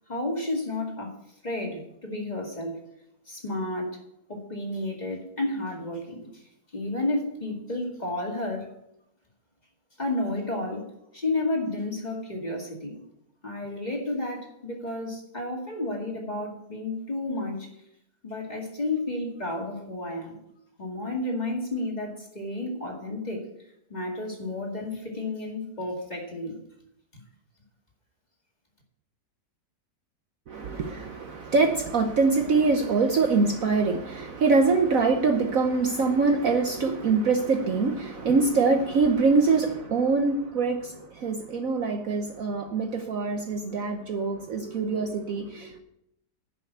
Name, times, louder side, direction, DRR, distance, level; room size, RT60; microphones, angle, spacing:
voice 1, 0.1-1.1 1.4-2.8 3.3-4.0 4.3-6.3 6.7-8.7 10.0-10.9 11.1-13.0 13.4-17.7 18.2-20.4 20.8-23.4 23.9-26.5 27.1-27.2, left 2 dB, 25° left, 0 dB, 2.2 m, -31 dB
voice 2, 30.5-45.8, right 4 dB, 55° right, 5 dB, 1.1 m, -24 dB
11.0 x 5.9 x 7.9 m, 0.78 s
omnidirectional pair, 1.9 m